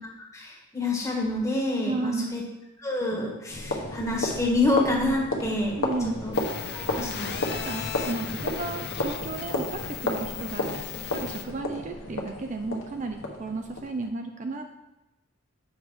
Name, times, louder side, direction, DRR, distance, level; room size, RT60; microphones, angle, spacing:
voice 1, 0.3-2.4 2.8-5.8 6.2-6.3 6.7-7.3, left 2 dB, 15° left, -2 dB, 1.5 m, -27 dB
voice 2, 1.9-2.3 5.7-6.2 7.5-10.8 11.1-14.7, right 3 dB, 35° right, 5 dB, 0.4 m, -33 dB
sound 1, 3.5-14.1, left 2 dB, 75° left, 1.2 m, -33 dB
sound 2, 6.3-11.4, left 10 dB, 55° left, 0.7 m, -37 dB
7.1 x 5.2 x 4.9 m, 0.97 s
head